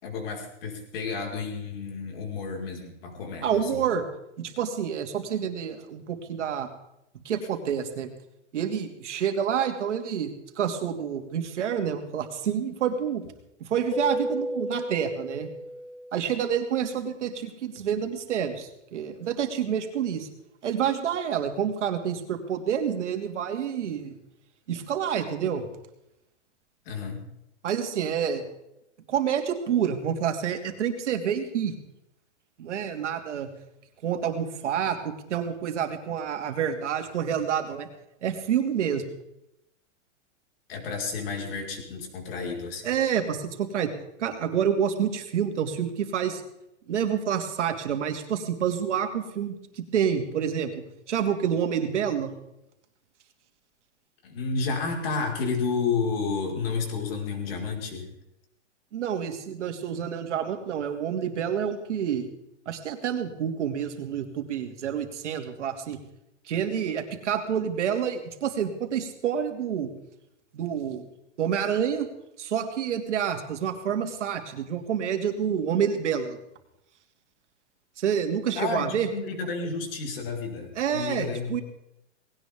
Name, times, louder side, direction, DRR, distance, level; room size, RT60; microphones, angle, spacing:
voice 1, 0.0-3.9 26.9-27.2 40.7-43.0 54.2-58.1 78.5-81.6, left 4 dB, 50° left, 1 dB, 5.3 m, -31 dB
voice 2, 3.4-4.0 4.4-6.7 7.2-8.1 8.5-13.3 13.6-15.5 16.1-20.3 20.6-24.1 24.7-25.7 27.6-28.4 29.1-31.7 32.6-33.5 34.0-37.9 38.2-39.0 42.8-43.9 44.2-46.4 46.9-50.7 51.1-52.3 58.9-62.3 62.7-66.0 66.5-69.9 70.5-71.0 71.4-72.1 72.4-76.4 78.0-79.1 80.7-81.6, right 8 dB, 70° right, 5 dB, 2.8 m, -28 dB
Keyboard (musical), 13.9-16.4, equal, 15° left, 1.4 m, -33 dB
19.5 x 18.0 x 3.7 m, 0.84 s
hypercardioid pair, 165°, 36 cm